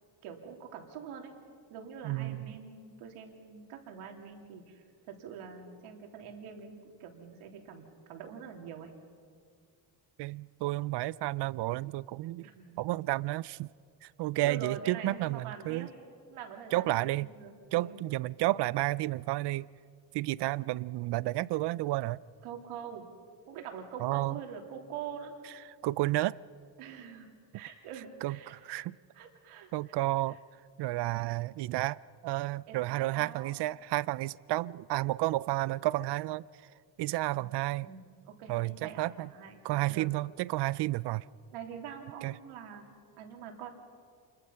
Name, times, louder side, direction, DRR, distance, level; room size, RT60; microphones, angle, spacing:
voice 1, 0.2-1.3 1.7-8.9 12.4-12.8 14.4-15.9 16.3-18.0 22.4-23.0 23.5-25.3 26.8-28.9 29.1-29.7 32.7-33.5 37.3-37.5 37.8-40.1 41.5-42.8 43.2-43.7, right 7 dB, 80° right, 3 dB, 3.2 m, -45 dB
voice 2, 2.0-2.6 10.2-12.5 12.8-13.7 14.0-15.9 16.7-17.3 17.7-19.7 20.1-22.2 24.0-24.4 25.8-26.4 28.2-29.0 29.7-30.4 30.8-36.4 37.0-37.9 38.5-39.3 39.6-41.2 42.2-42.3, right 17 dB, 55° right, 21 dB, 0.5 m, -31 dB
28.0 x 22.0 x 5.7 m, 2.2 s
cardioid pair, 130°, 50 cm